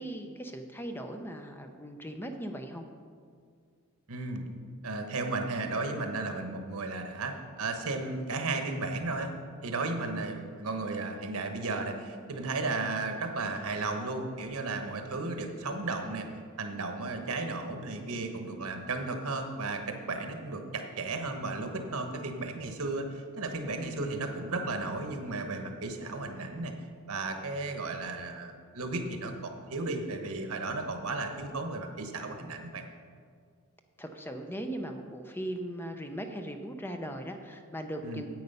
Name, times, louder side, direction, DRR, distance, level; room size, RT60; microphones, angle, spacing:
voice 1, 0.0-2.9 34.0-38.3, right 1 dB, 10° left, 5 dB, 0.6 m, -38 dB
voice 2, 4.1-4.4 4.8-9.3 9.6-16.3 16.6-26.7 27.1-32.8 38.0-38.2, right 3 dB, 85° right, 5 dB, 1.2 m, -34 dB
9.4 x 8.3 x 5.5 m, 2.1 s
head